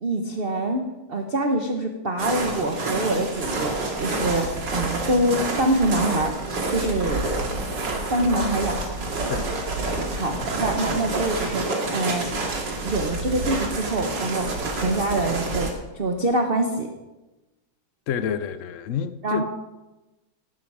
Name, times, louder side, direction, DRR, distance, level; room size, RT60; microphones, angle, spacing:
voice 1, 0.0-0.8 1.1-6.4 6.7-7.3 8.1-8.8 10.1-12.3 12.8-16.9 19.2-19.4, right 1 dB, 35° right, 1.1 m, -25 dB
sound 1, 2.2-15.7, right 2 dB, 60° right, 2.9 m, -28 dB
voice 2, 9.2-9.5 18.1-19.4, left 8 dB, 90° left, 0.6 m, -29 dB
17.0 x 11.5 x 4.9 m
omnidirectional pair, 2.2 m